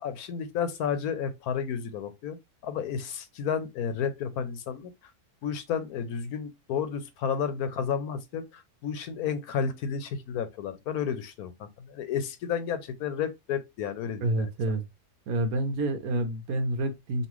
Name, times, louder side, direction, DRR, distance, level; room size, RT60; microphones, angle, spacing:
voice 1, 0.0-2.4 2.6-4.9 5.4-14.5, left 7 dB, 75° left, 1.1 m, -32 dB
voice 2, 14.2-14.8 15.3-17.3, right 1 dB, 70° right, 1.2 m, -28 dB
5.4 x 2.5 x 3.0 m
omnidirectional pair, 1.7 m